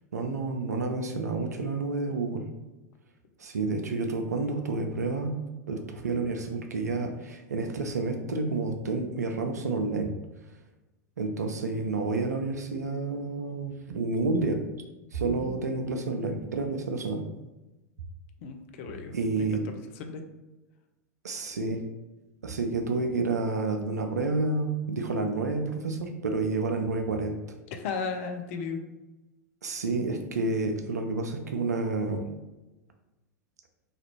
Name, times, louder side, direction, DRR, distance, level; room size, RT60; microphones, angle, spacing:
voice 1, 0.1-2.4 3.4-5.4 5.7-10.1 11.2-14.6 15.1-17.2 19.1-19.6 21.2-21.8 22.4-27.4 29.6-32.2, right 3 dB, 75° right, 5 dB, 0.4 m, -29 dB
voice 2, 18.4-20.3 27.7-28.8, left 5 dB, 50° left, 5 dB, 0.4 m, -36 dB
3.2 x 2.4 x 2.9 m, 1.1 s
figure-of-eight pair, 90°, 9 cm